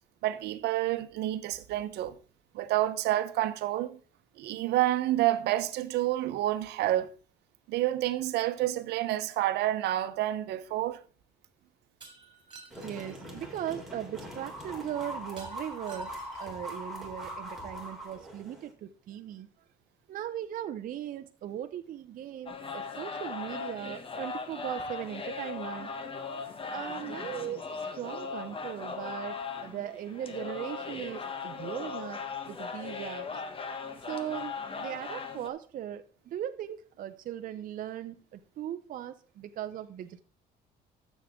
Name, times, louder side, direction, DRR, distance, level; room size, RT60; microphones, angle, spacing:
voice 1, 0.2-2.1 2.5-4.0 4.4-7.1 7.7-11.0, right 14 dB, 80° right, 0.9 m, -29 dB
Shatter, 12.0-13.2 15.4-16.6, right 4 dB, 30° right, 3.6 m, -52 dB
sound 1, 12.7-18.7, equal, ahead, 3.4 m, -42 dB
voice 2, 12.8-19.5 20.1-25.9 26.7-32.2 32.4-33.4 33.9-40.2, right 11 dB, 55° right, 0.6 m, -39 dB
sound 2, 22.5-35.5, left 5 dB, 30° left, 1.4 m, -38 dB
13.5 x 7.3 x 3.6 m
cardioid pair, 110°, 17 cm